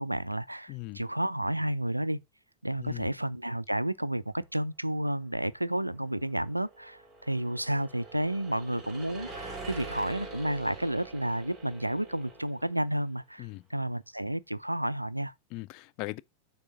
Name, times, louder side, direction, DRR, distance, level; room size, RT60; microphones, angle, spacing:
voice 1, 0.0-2.2 2.6-15.3, right 1 dB, 85° right, 0.3 m, -31 dB
voice 2, 0.7-1.0 2.8-3.1 13.4-13.6 15.5-16.2, left 22 dB, 45° left, 0.3 m, -39 dB
sound 1, 6.0-12.9, right 3 dB, 15° right, 3.1 m, -45 dB
6.1 x 3.6 x 5.5 m
figure-of-eight pair, 90°, 0 cm